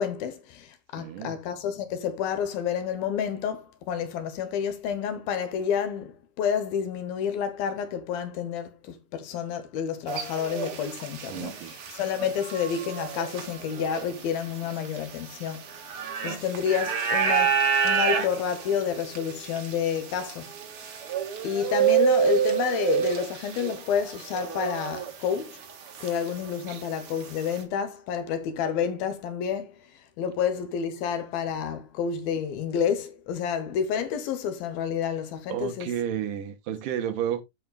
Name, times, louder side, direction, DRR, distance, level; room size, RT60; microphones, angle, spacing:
voice 1, 0.0-15.6 16.2-20.5 21.4-25.6 26.0-29.7 30.2-35.9, left 8 dB, 75° left, 2.7 m, -29 dB
voice 2, 1.0-1.4 11.3-11.8 26.7-26.8 35.5-37.4, right 10 dB, 75° right, 2.2 m, -31 dB
sound 1, 10.1-25.3 25.6-27.6, right 8 dB, 60° right, 1.5 m, -29 dB
14.5 x 5.0 x 2.2 m
omnidirectional pair, 4.5 m